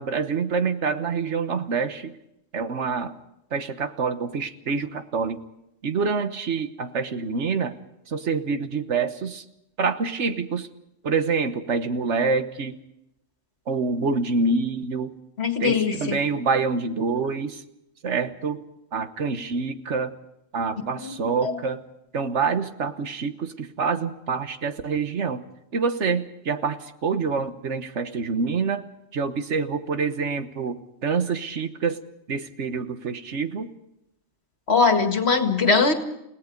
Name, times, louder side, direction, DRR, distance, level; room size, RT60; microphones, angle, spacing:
voice 1, 0.0-2.1 2.5-3.1 3.5-5.4 5.8-7.7 8.1-9.4 9.8-10.7 11.0-12.7 13.7-15.1 15.6-17.6 18.0-18.6 18.9-20.1 20.5-21.8 22.1-25.4 25.7-28.8 29.1-30.8 31.0-32.0 32.3-33.7, right 4 dB, 75° right, 9 dB, 1.5 m, -26 dB
voice 2, 15.4-16.2 21.0-21.6 34.7-35.9, left 4 dB, 60° left, 6 dB, 2.1 m, -21 dB
30.0 x 17.5 x 5.2 m, 0.85 s
omnidirectional pair, 1.2 m